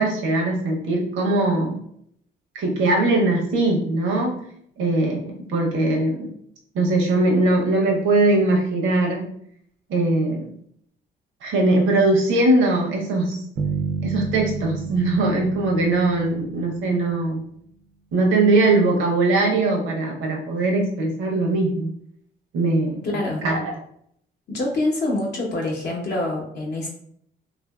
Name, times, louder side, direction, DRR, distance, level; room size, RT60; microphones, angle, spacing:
voice 1, 0.0-1.8 2.5-4.4 4.8-6.3 6.7-9.3 9.9-10.4 11.4-13.4 14.0-17.4 18.1-21.9 22.5-23.0 23.4-23.7, right 2 dB, 85° right, 0 dB, 0.7 m, -21 dB
sound 1, 13.6-17.5, right 5 dB, 60° right, 0.4 m, -31 dB
voice 2, 23.0-23.4 24.5-26.9, left 2 dB, 55° left, -2 dB, 0.7 m, -25 dB
2.7 x 2.5 x 2.3 m, 0.68 s
cardioid pair, 90°, 20 cm